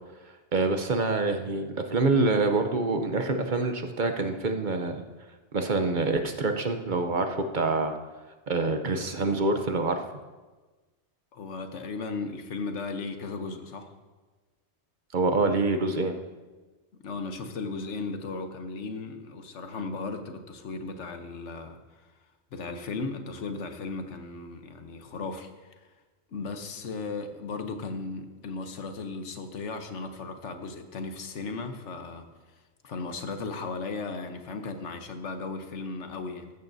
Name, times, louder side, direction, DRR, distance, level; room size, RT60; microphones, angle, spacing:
voice 1, 0.5-5.0 5.5-8.0 8.5-10.0 15.1-16.2, right 3 dB, 45° right, 6 dB, 0.8 m, -26 dB
voice 2, 11.3-13.9 16.9-22.1 22.5-25.9 26.3-32.3 32.8-36.5, left 4 dB, 80° left, 7 dB, 1.3 m, -36 dB
15.0 x 12.5 x 2.7 m, 1.3 s
omnidirectional pair, 1.2 m